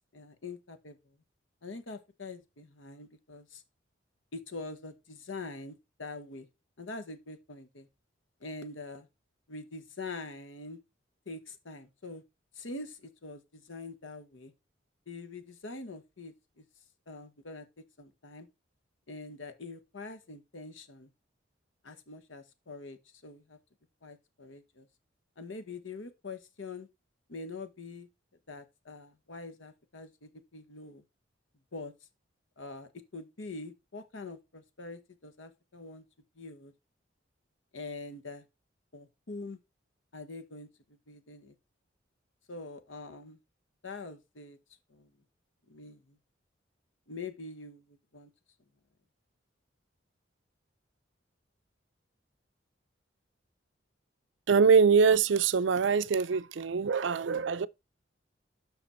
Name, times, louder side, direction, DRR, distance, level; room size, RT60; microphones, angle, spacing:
voice 1, 0.1-1.2 1.6-3.6 4.3-6.5 6.8-7.9 8.4-9.1 9.5-10.8 11.3-12.2 12.5-14.5 15.1-16.6 17.1-17.7 18.0-18.5 19.1-21.1 21.8-23.6 24.0-24.9 25.4-26.9 27.3-28.1 28.5-31.0 31.7-31.9 32.6-36.0 36.4-36.7 37.7-38.4 38.9-39.6 40.1-40.7 41.1-41.5 42.5-43.4 43.8-44.6 44.9-45.1 45.7-46.2 47.1-48.3, left 3 dB, 80° left, 1.2 m, -44 dB
voice 2, 54.5-57.7, right 5 dB, 70° right, 0.5 m, -23 dB
7.8 x 5.9 x 4.3 m
head